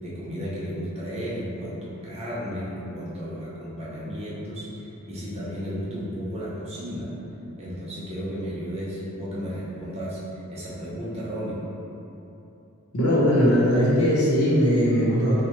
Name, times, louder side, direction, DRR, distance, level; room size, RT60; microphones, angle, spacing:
voice 1, 0.0-7.1 7.6-11.6, equal, 30° right, -7 dB, 0.5 m, -33 dB
voice 2, 12.9-15.4, equal, 85° left, -7 dB, 0.8 m, -20 dB
4.4 x 2.1 x 3.0 m, 2.9 s
head